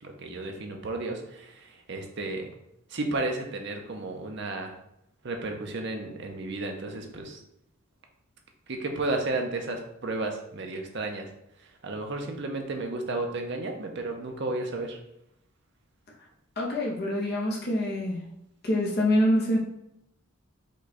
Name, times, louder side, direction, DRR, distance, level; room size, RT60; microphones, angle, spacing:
voice 1, 0.0-2.5 2.9-4.7 5.2-7.4 8.7-11.3 11.6-15.0, right 2 dB, 50° right, 3 dB, 0.7 m, -33 dB
voice 2, 16.6-18.2 18.6-19.6, left 1 dB, 45° left, -2 dB, 0.8 m, -25 dB
5.2 x 2.3 x 4.1 m, 0.82 s
head